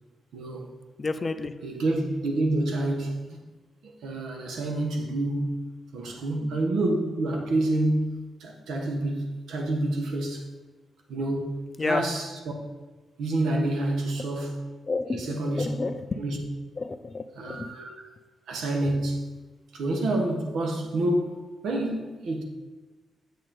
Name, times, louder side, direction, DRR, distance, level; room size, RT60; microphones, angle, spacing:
voice 1, 0.3-0.7 1.6-3.2 3.8-10.4 11.1-12.5 13.2-14.7 15.1-15.7 16.2-16.4 17.3-18.1 18.5-19.3 19.7-22.4, right 1 dB, 90° right, 1.2 m, -28 dB
voice 2, 1.0-1.5 11.8-12.1 14.9-16.2 16.8-17.7, left 3 dB, 25° left, 0.4 m, -30 dB
7.6 x 6.8 x 3.9 m
wide cardioid pair, 155°, 0 cm